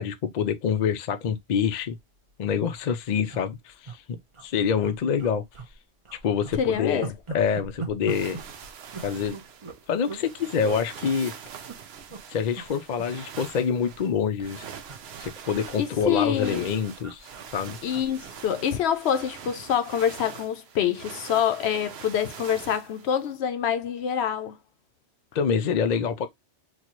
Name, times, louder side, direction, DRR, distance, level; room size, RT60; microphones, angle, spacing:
voice 1, 0.0-2.0 2.4-5.4 6.2-8.4 9.0-9.4 9.9-11.3 12.3-14.7 15.2-17.3 17.5-17.8 25.3-26.3, left 7 dB, 55° left, 0.5 m, -26 dB
sound 1, 1.8-2.0 2.3-2.4 2.6-2.8 3.3-4.0 4.3-4.5 4.8-5.7 6.0-10.3 10.6-10.8 11.4-12.2 12.5-12.7 13.0-14.1 14.4-18.9 19.3-19.5, right 4 dB, 30° right, 0.7 m, -41 dB
voice 2, 6.6-7.1 15.8-16.7 17.8-24.6, left 9 dB, 70° left, 0.8 m, -26 dB
sound 2, 8.1-23.4, right 7 dB, 65° right, 0.9 m, -44 dB
4.1 x 2.3 x 2.9 m
omnidirectional pair, 1.2 m